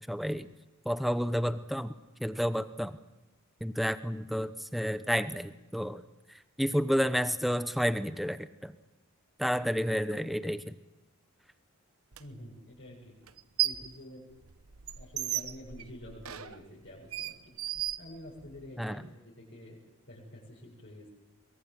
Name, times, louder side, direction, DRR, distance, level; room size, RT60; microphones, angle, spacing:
voice 1, 0.1-0.5 0.8-1.9 2.2-3.0 3.6-6.0 6.3-8.7 9.4-10.8 18.8-19.0, equal, ahead, 11 dB, 0.9 m, -30 dB
sound 1, 12.1-12.2 13.3-13.9 14.3-18.7, right 12 dB, 75° right, 1.0 m, -35 dB
voice 2, 12.2-13.2 13.6-14.3 15.0-17.5 18.0-19.8 20.1-21.1, left 1 dB, 55° left, -5 dB, 7.2 m, -48 dB
23.0 x 22.0 x 7.9 m, 1.0 s
head